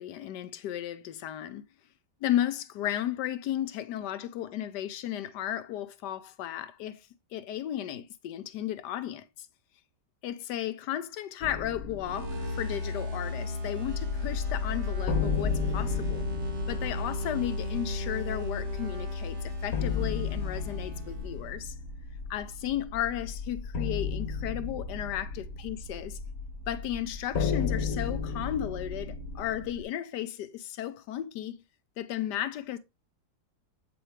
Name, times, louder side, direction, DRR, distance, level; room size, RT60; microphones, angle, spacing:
voice 1, 0.0-1.7 2.2-9.5 10.2-16.3 16.7-21.7 22.3-26.2 26.7-31.6 32.0-32.8, left 11 dB, 80° left, 1.2 m, -34 dB
sound 1, 11.4-14.3 14.5-14.6 15.1-29.8, left 5 dB, 55° left, 1.3 m, -35 dB
sound 2, 12.0-21.5, left 2 dB, 45° right, 1.5 m, -35 dB
sound 3, 13.8-29.4, left 5 dB, 10° right, 1.8 m, -40 dB
7.8 x 4.7 x 3.2 m
omnidirectional pair, 1.8 m